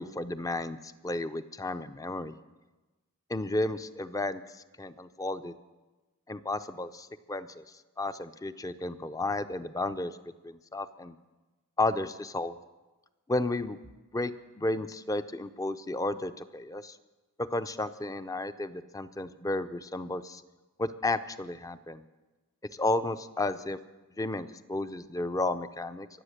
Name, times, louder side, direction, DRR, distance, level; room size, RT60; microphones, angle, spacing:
voice 1, 0.0-2.3 3.3-4.4 4.8-5.5 6.3-7.6 8.0-10.2 10.4-11.1 11.8-12.6 13.3-13.8 14.1-17.0 17.4-20.4 20.8-22.0 22.7-23.8 24.2-26.1, left 2 dB, 15° left, 12 dB, 0.5 m, -32 dB
24.0 x 8.1 x 6.6 m, 1.2 s
head